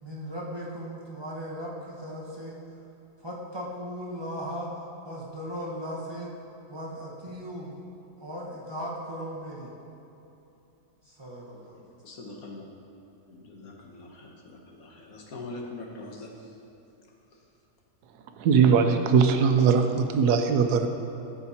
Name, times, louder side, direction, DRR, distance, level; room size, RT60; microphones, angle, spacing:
voice 1, 0.0-2.6 3.2-4.7 5.0-6.3 6.7-7.8 8.2-9.7 11.0-11.8, equal, 20° right, -5 dB, 0.8 m, -37 dB
voice 2, 12.0-12.6 13.3-16.3, left 2 dB, 65° left, 0 dB, 1.4 m, -42 dB
voice 3, 18.4-20.9, right 6 dB, 80° right, 6 dB, 1.1 m, -20 dB
13.5 x 5.8 x 2.8 m, 2.9 s
omnidirectional pair, 1.7 m